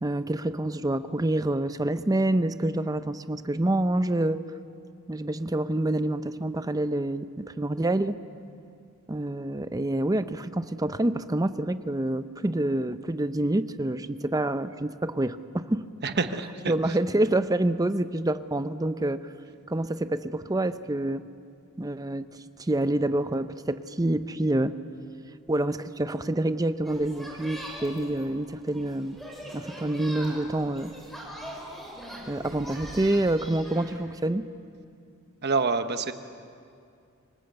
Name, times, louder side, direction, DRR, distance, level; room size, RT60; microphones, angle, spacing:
voice 1, 0.0-4.4 5.1-8.2 9.1-15.9 16.7-19.2 19.7-21.2 21.8-22.3 22.6-24.7 25.5-29.2 29.5-30.9 32.3-34.4, right 1 dB, 15° right, 12 dB, 0.6 m, -27 dB
voice 2, 16.0-17.0 35.4-36.1, right 4 dB, 50° right, 9 dB, 1.1 m, -27 dB
sound 1, 26.8-34.0, equal, ahead, 5.4 m, -42 dB
26.0 x 20.0 x 7.9 m, 2.4 s
head